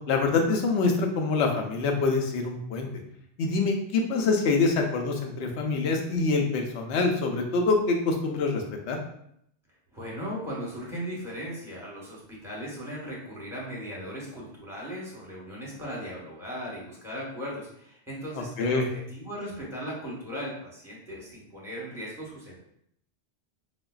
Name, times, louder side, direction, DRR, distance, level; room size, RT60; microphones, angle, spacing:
voice 1, 0.1-2.9 3.4-9.0 18.6-18.9, left 3 dB, 80° left, 2 dB, 0.9 m, -25 dB
voice 2, 9.9-22.6, equal, 5° right, -5 dB, 1.0 m, -37 dB
4.9 x 2.2 x 2.3 m, 0.71 s
omnidirectional pair, 1.2 m